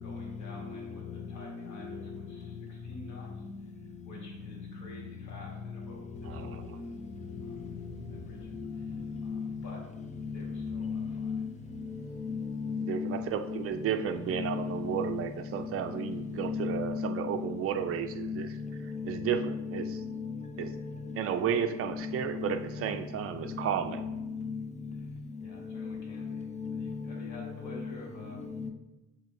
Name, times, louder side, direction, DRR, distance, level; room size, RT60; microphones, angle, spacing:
voice 1, 0.0-7.0 7.4-7.6 8.1-8.9 9.2-9.8 10.3-11.4 14.1-14.2 25.4-28.5, left 1 dB, 70° left, 1.6 m, -50 dB
sound 1, 6.1-16.6, equal, 40° left, 1.1 m, -53 dB
voice 2, 6.3-6.6 12.9-18.5 19.0-19.9 20.6-20.7 21.2-24.0, right 8 dB, 50° right, 0.4 m, -32 dB
voice 3, 10.6-11.5 12.1-13.6 13.9-15.2 16.4-17.2 18.2-18.4 18.9-19.9 20.8-20.9 21.5-22.5 24.4-24.6 25.7-26.0 26.3-27.0 27.6-27.9 28.4-28.7, left 5 dB, 25° left, 0.5 m, -35 dB
7.5 x 2.8 x 2.6 m
cardioid pair, 90°, 30 cm